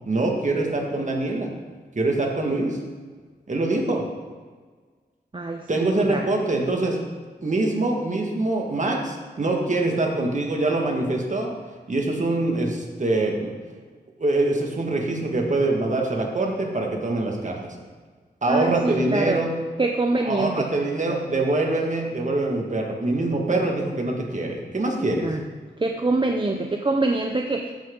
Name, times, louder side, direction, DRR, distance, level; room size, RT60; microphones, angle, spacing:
voice 1, 0.1-1.5 2.0-2.8 3.5-4.0 5.7-7.0 7.4-11.5 11.9-13.5 14.2-17.6 18.4-19.5 20.3-25.3, right 2 dB, 45° right, 0 dB, 1.8 m, -24 dB
voice 2, 5.3-6.3 18.5-19.4 19.8-20.7 25.2-25.4 25.8-27.7, right 2 dB, 30° right, 3 dB, 0.6 m, -25 dB
14.5 x 5.8 x 3.8 m, 1.5 s
wide cardioid pair, 90°, 18 cm